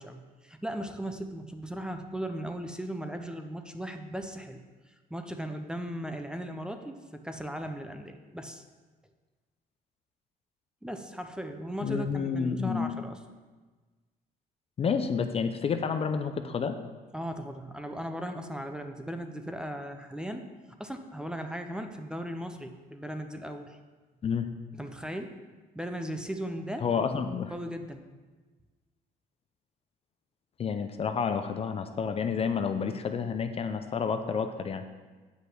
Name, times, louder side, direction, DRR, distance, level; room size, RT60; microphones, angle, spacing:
voice 1, 0.0-8.6 10.8-13.2 17.1-20.5 20.8-23.8 24.8-25.4 25.7-26.9 27.5-28.0, equal, 5° right, 6 dB, 0.6 m, -37 dB
voice 2, 11.8-13.0 14.8-16.8 24.2-24.5 26.8-27.5 30.6-34.8, left 6 dB, 35° left, 8 dB, 0.5 m, -29 dB
8.1 x 5.4 x 6.0 m, 1.3 s
cardioid pair, 110°, 17 cm